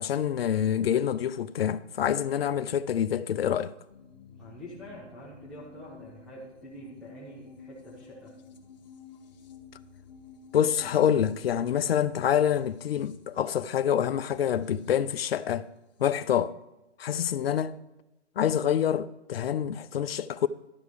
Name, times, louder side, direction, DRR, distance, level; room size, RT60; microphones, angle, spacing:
voice 1, 0.0-3.7 10.5-15.7 16.0-16.5 17.0-17.8 18.4-20.5, left 9 dB, 55° left, 0.5 m, -26 dB
sound 1, 3.9-16.4, left 4 dB, 35° left, 1.0 m, -52 dB
voice 2, 4.4-8.3, equal, ahead, 1.0 m, -46 dB
12.0 x 4.7 x 6.7 m
hypercardioid pair, 155°, 36 cm